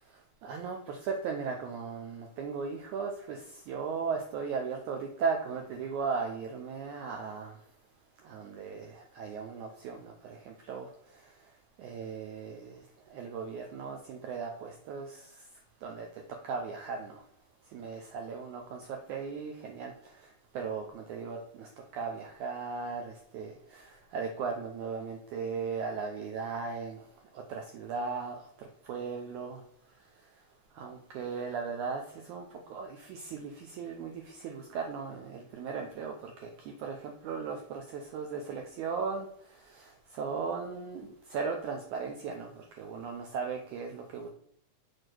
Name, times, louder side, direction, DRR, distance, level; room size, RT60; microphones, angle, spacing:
voice 1, 0.4-7.6 8.2-11.3 11.8-12.8 13.1-15.5 15.8-16.1 16.4-17.2 17.7-27.0 27.3-29.6 30.7-44.3, right 5 dB, 80° right, 1.7 m, -37 dB
6.2 x 4.8 x 4.5 m
omnidirectional pair, 4.3 m